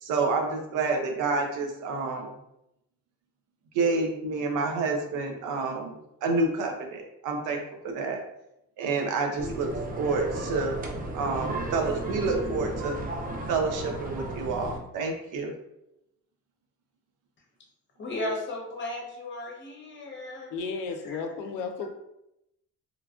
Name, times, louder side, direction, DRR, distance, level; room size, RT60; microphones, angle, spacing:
voice 1, 0.0-2.3 3.7-7.6 7.8-8.2 8.8-10.8 11.1-13.0 13.5-15.5, right 3 dB, 90° right, 3 dB, 0.6 m, -28 dB
sound 1, 9.4-14.8, right 2 dB, 30° right, 0.4 m, -34 dB
voice 2, 18.0-20.5 21.0-21.2 21.8-21.9, left 1 dB, 40° left, 0 dB, 0.8 m, -35 dB
voice 3, 20.5-21.9, left 5 dB, 90° left, 5 dB, 0.5 m, -33 dB
3.1 x 2.3 x 2.3 m, 0.84 s
cardioid pair, 90°, 30 cm